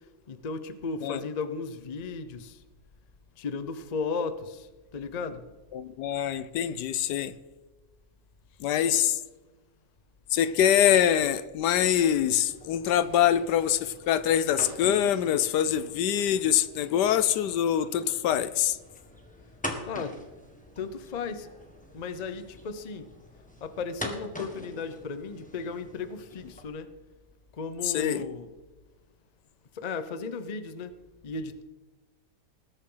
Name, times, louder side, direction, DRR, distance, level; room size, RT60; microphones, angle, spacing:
voice 1, 0.3-2.6 3.4-4.7 4.9-5.4 19.9-20.2 20.8-21.5 21.9-23.1 23.6-26.9 27.5-28.5 29.7-30.9 31.2-31.6, left 4 dB, 45° left, 0.5 m, -35 dB
voice 2, 5.7-7.3 8.6-9.2 10.3-18.8 27.8-28.2, left 10 dB, 75° left, 1.2 m, -24 dB
sound 1, 12.5-26.6, equal, 5° left, 1.5 m, -44 dB
20.0 x 8.6 x 3.9 m
omnidirectional pair, 1.8 m